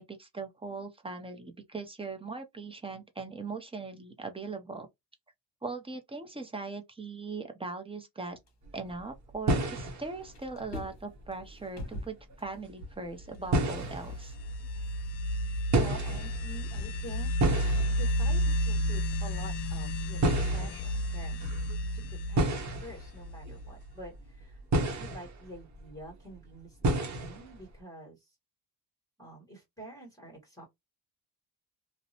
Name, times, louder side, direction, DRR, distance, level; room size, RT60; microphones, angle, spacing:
voice 1, 0.0-4.9 5.6-8.4 8.7-14.4, right 3 dB, 15° right, 0.5 m, -40 dB
sound 1, 8.3-9.8 10.1-17.1, left 1 dB, 40° left, 1.0 m, -47 dB
sound 2, 8.6-9.0 9.3-12.9 13.2-14.6 15.7-26.3 26.8-27.7, right 1 dB, 45° right, 0.8 m, -32 dB
sound 3, 13.4-23.9, equal, 75° left, 0.5 m, -32 dB
voice 2, 15.7-17.3 17.9-21.5 21.9-28.3 29.2-30.6, right 1 dB, 10° left, 1.3 m, -47 dB
2.6 x 2.1 x 2.7 m
cardioid pair, 105°, 41 cm